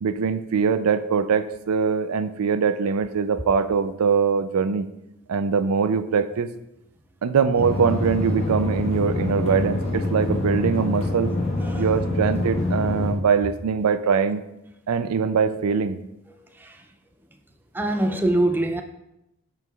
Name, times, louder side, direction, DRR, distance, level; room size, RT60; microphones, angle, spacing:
voice 1, 0.0-4.9 5.3-6.5 7.2-11.3 11.8-14.4 14.9-16.0, right 6 dB, 85° right, 12 dB, 0.4 m, -22 dB
sound 1, 7.6-13.1, left 2 dB, 30° left, 1.3 m, -25 dB
voice 2, 17.7-18.8, right 1 dB, 10° right, 5 dB, 0.4 m, -23 dB
13.0 x 4.6 x 2.3 m, 0.86 s
head